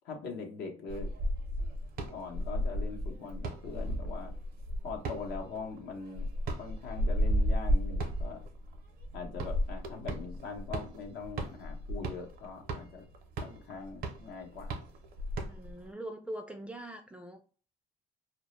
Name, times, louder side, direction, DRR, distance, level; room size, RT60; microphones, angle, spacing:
voice 1, 0.0-1.1 2.1-4.3 4.8-6.3 6.6-8.5 9.1-13.0 13.4-14.8, left 4 dB, 75° left, 0.7 m, -42 dB
sound 1, 0.9-15.9, equal, 60° right, 0.5 m, -34 dB
voice 2, 15.5-17.4, right 1 dB, 5° right, 0.3 m, -42 dB
2.1 x 2.0 x 2.9 m
cardioid pair, 110°, 17 cm